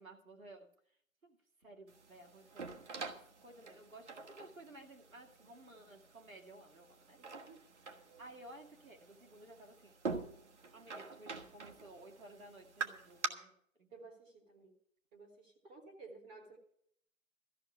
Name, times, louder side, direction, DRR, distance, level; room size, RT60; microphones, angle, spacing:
voice 1, 0.0-7.2 8.2-10.0 10.7-13.9, right 1 dB, 80° right, 2 dB, 2.4 m, -56 dB
sound 1, 1.9-13.3, right 4 dB, 55° right, 1.4 m, -46 dB
voice 2, 7.2-7.6 13.9-14.7 15.1-16.6, right 3 dB, 10° right, 1 dB, 1.3 m, -55 dB
14.0 x 6.1 x 9.4 m, 0.66 s
figure-of-eight pair, 145°, 41 cm